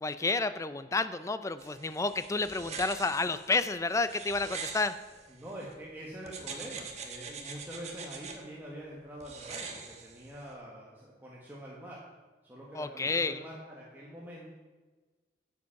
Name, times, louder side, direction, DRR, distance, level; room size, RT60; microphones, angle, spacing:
voice 1, 0.0-5.0 12.7-13.4, left 3 dB, 20° left, 13 dB, 0.4 m, -30 dB
sound 1, 1.6-5.7 6.3-8.4 9.2-10.5, right 5 dB, 40° right, 1.3 m, -43 dB
voice 2, 5.3-12.0 12.4-14.5, right 1 dB, 10° right, -5 dB, 1.5 m, -45 dB
9.3 x 7.7 x 5.9 m, 1.3 s
head